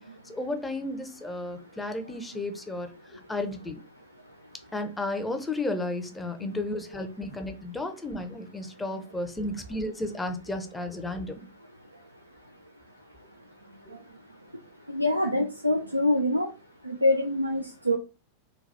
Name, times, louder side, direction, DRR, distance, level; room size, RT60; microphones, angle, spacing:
voice 1, 0.3-3.8 4.7-11.5 13.9-14.0, left 2 dB, 10° left, 6 dB, 0.6 m, -33 dB
voice 2, 14.9-16.5 16.9-18.0, left 1 dB, 85° right, 4 dB, 0.4 m, -25 dB
4.0 x 2.3 x 3.2 m, 0.31 s
figure-of-eight pair, 90°, 0 cm